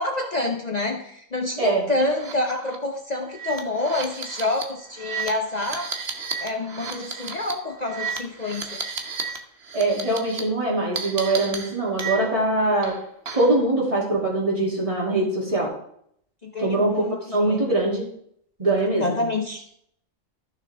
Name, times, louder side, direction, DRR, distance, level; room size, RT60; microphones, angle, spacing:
voice 1, 0.0-5.9 6.4-8.8 16.4-17.7 18.8-19.6, left 2 dB, 40° left, 3 dB, 0.7 m, -28 dB
sound 1, 2.1-2.3 2.6-2.8 3.3-9.4 9.6-10.4 11.0-12.5 12.8-13.6, right 5 dB, 55° right, 1.2 m, -33 dB
voice 2, 9.7-13.0 13.3-15.7 16.6-18.1 18.6-19.2, right 2 dB, 25° right, -3 dB, 2.8 m, -22 dB
14.0 x 6.2 x 3.5 m, 0.68 s
omnidirectional pair, 1.4 m